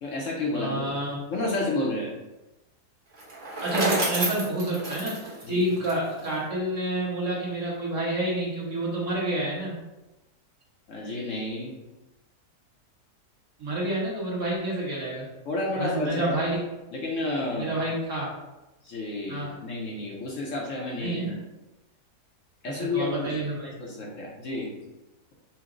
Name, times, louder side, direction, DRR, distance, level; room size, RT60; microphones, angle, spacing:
voice 1, 0.0-0.8 1.3-2.1 5.4-5.6 10.9-11.7 15.5-16.3 16.9-17.7 18.8-21.2 22.6-23.4 23.8-24.7, left 2 dB, 60° left, -2 dB, 1.0 m, -30 dB
voice 2, 0.5-1.2 3.6-9.8 13.6-15.3 15.8-16.6 17.5-18.3 19.3-19.5 21.0-21.4 22.7-23.7, right 1 dB, 55° right, -5 dB, 1.4 m, -29 dB
Bicycle, 3.1-6.3, right 2 dB, 35° right, 1.1 m, -30 dB
5.7 x 2.1 x 3.7 m, 1.0 s
omnidirectional pair, 1.7 m